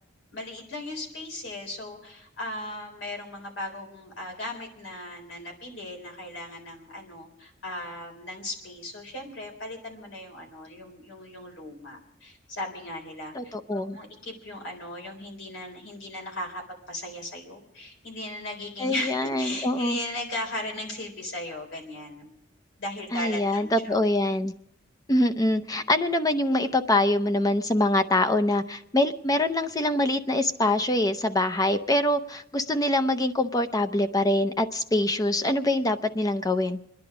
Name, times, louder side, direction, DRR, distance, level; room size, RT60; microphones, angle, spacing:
voice 1, 0.3-16.6 16.9-22.3 22.8-23.9, left 1 dB, 80° left, 2 dB, 3.9 m, -37 dB
voice 2, 13.3-14.0 18.8-20.0 23.1-24.5 25.1-36.8, left 1 dB, 20° left, 9 dB, 0.6 m, -24 dB
26.5 x 10.5 x 4.9 m, 0.79 s
head